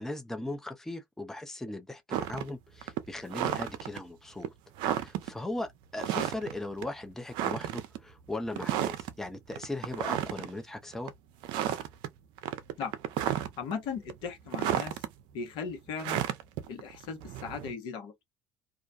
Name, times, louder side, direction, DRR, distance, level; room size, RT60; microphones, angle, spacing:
voice 1, 0.0-4.5 4.9-11.1, left 2 dB, 5° left, 0.5 m, -38 dB
sound 1, 2.1-2.5 2.8-4.0 4.4-4.5 4.8-5.3 6.0-6.6 6.8-6.9 7.3-8.0 8.5-9.1 9.5-10.5 10.9-11.1 11.4-12.1 12.4-13.7 14.1-15.1 16.0-17.7, right 11 dB, 65° right, 0.5 m, -32 dB
voice 2, 13.6-15.0 15.3-16.2 16.7-18.1, left 6 dB, 65° left, 1.0 m, -37 dB
2.3 x 2.2 x 2.5 m
hypercardioid pair, 70°, 9 cm